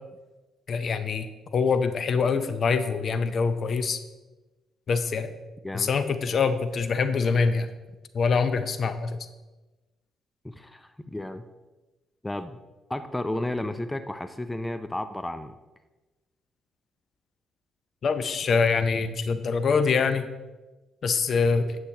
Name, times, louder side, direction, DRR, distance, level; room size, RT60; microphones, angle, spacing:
voice 1, 0.7-4.0 4.9-5.3 5.7-7.7 8.1-9.2 18.0-20.3 21.0-21.8, left 5 dB, 55° left, 10 dB, 0.6 m, -24 dB
voice 2, 10.4-11.4 12.2-12.6 12.9-15.6, left 1 dB, 10° left, 10 dB, 0.4 m, -32 dB
9.9 x 7.8 x 2.9 m, 1.1 s
cardioid pair, 95°, 0 cm